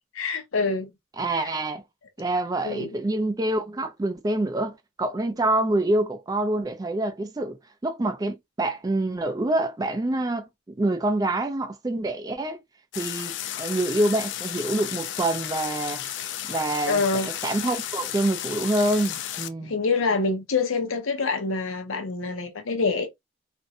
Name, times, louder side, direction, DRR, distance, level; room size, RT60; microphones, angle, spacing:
voice 1, 0.1-0.9 1.3-1.5 2.6-2.9 16.9-17.3 19.6-23.1, left 4 dB, 85° left, 0.7 m, -26 dB
voice 2, 1.2-1.8 2.2-10.5 10.8-12.6 13.0-16.0 16.5-19.7, right 1 dB, 20° right, 0.3 m, -26 dB
sound 1, 12.9-19.5, left 11 dB, 60° left, 0.3 m, -33 dB
2.5 x 2.2 x 2.6 m
head